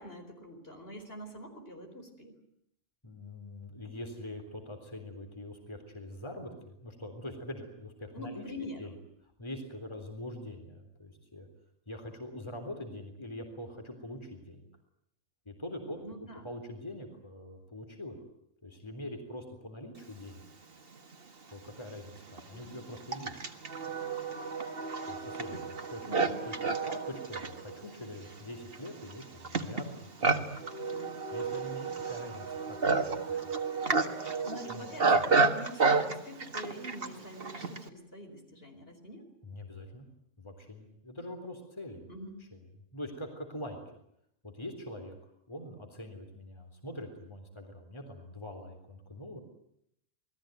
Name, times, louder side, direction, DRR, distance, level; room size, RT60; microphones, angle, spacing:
voice 1, 0.0-2.3 8.1-8.8 16.0-16.4 22.5-22.6 26.1-26.4 30.9-31.1 34.4-39.2 42.1-42.4, equal, 50° left, 4 dB, 4.9 m, -45 dB
voice 2, 3.0-8.4 8.8-9.0 9.4-11.5 11.9-14.7 15.5-16.0 16.4-18.2 18.6-20.4 21.5-23.4 25.1-26.6 26.9-30.5 31.3-33.5 34.6-34.9 35.1-35.3 39.4-40.1 40.4-42.1 42.4-42.7 42.9-43.8 44.4-49.4, left 1 dB, 20° left, 4 dB, 3.7 m, -44 dB
Livestock farm animals working animals, 21.1-21.2 22.0-37.9, right 4 dB, 50° right, 1.9 m, -31 dB
28.0 x 19.5 x 9.2 m, 0.75 s
omnidirectional pair, 1.3 m